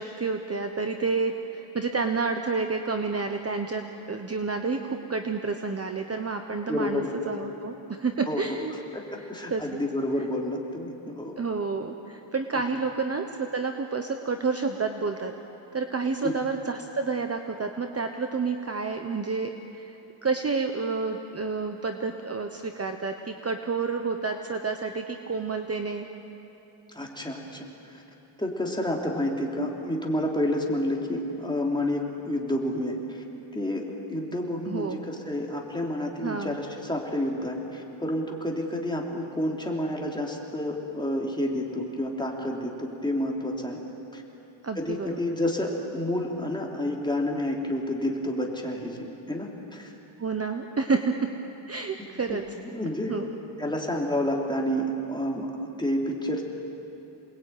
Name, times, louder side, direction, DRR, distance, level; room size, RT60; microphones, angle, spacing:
voice 1, 0.0-8.7 9.2-9.8 11.4-15.3 15.7-26.1 34.7-35.1 36.2-36.6 44.6-45.2 50.2-51.3 51.7-52.4 53.1-53.3, right 4 dB, 30° right, 5 dB, 1.1 m, -29 dB
voice 2, 6.7-7.1 8.3-8.4 8.9-11.4 12.5-12.6 16.2-16.3 26.9-28.0 28.4-33.2 33.5-43.8 44.1-44.2 44.7-49.9 52.0-52.4 52.7-53.3 53.6-56.5, left 1 dB, 10° left, -1 dB, 3.2 m, -29 dB
28.0 x 20.0 x 9.3 m, 2.9 s
wide cardioid pair, 140°, 50 cm